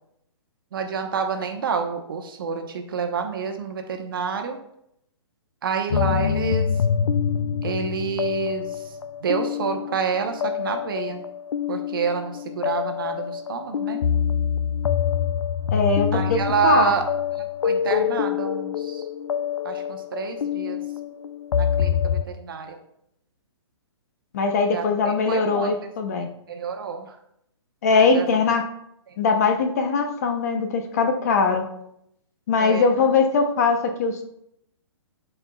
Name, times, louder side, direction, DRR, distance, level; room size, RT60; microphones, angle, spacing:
voice 1, 0.7-4.6 5.6-6.7 7.6-8.9 9.2-11.2 11.7-14.0 16.1-17.0 17.3-19.1 19.6-20.8 21.6-22.8 24.7-25.9 26.2-27.2 27.9-28.3 29.1-29.2 32.6-32.9, right 6 dB, 50° right, 5 dB, 0.8 m, -28 dB
sound 1, 5.9-22.3, left 8 dB, 75° left, 0.4 m, -26 dB
voice 2, 15.7-16.8 24.3-26.3 27.8-28.6 29.2-31.7 32.5-34.2, left 4 dB, 35° left, 6 dB, 0.7 m, -21 dB
11.5 x 4.5 x 2.3 m, 0.76 s
hypercardioid pair, 170°, 15 cm